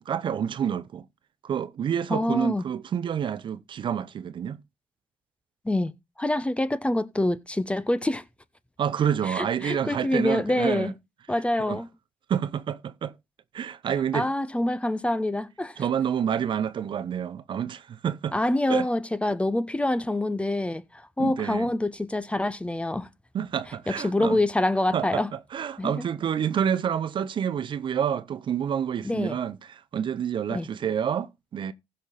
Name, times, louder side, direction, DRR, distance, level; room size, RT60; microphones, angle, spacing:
voice 1, 0.1-1.0 1.4-4.6 8.8-10.9 11.6-11.8 12.3-13.2 13.5-14.3 15.8-18.4 18.7-18.9 21.2-21.7 23.3-24.4 24.9-31.7, right 8 dB, 55° right, 0.7 m, -28 dB
voice 2, 2.1-2.6 5.6-5.9 6.2-8.2 9.3-10.9 11.3-11.9 14.1-15.8 18.3-23.1 23.9-25.3 25.8-26.0 29.0-29.4 30.5-30.7, left 1 dB, 10° left, 1.1 m, -26 dB
15.5 x 5.8 x 4.1 m
supercardioid pair, 70°, 10 cm